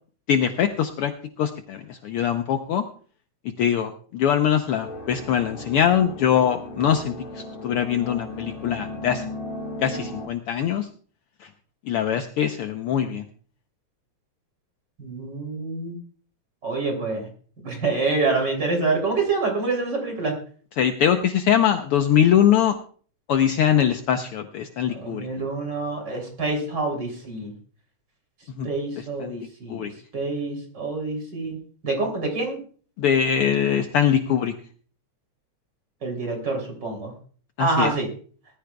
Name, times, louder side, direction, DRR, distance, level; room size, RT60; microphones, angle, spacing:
voice 1, 0.3-1.1 1.4-2.8 3.6-9.2 9.8-10.9 11.4-11.5 11.9-13.2 20.8-22.8 23.3-25.3 28.6-29.4 29.7-29.9 33.0-34.5 37.6-37.9, left 9 dB, 75° left, 6 dB, 1.3 m, -22 dB
sound 1, 4.8-10.3, left 1 dB, 30° left, 1.0 m, -36 dB
voice 2, 15.0-16.0 16.6-17.3 17.6-20.3 24.9-27.5 28.6-29.8 30.1-31.6 31.8-32.6 36.0-37.1 37.6-38.1, right 3 dB, 35° right, 2 dB, 3.7 m, -26 dB
20.0 x 14.5 x 2.3 m, 0.44 s
omnidirectional pair, 3.4 m